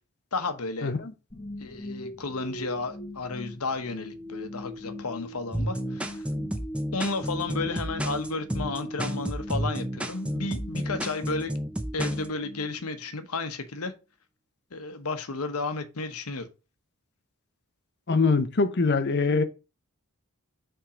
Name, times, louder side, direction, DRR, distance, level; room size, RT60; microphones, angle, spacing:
voice 1, 0.3-0.9 1.6-6.2 6.9-11.5 11.9-13.9 14.7-16.5, left 3 dB, 80° left, 1.0 m, -33 dB
sound 1, 1.3-13.5, equal, 20° left, 1.5 m, -40 dB
sound 2, 5.5-12.3, equal, 5° right, 0.6 m, -31 dB
voice 2, 18.1-19.4, left 4 dB, 50° left, 0.8 m, -23 dB
5.7 x 3.7 x 5.0 m
head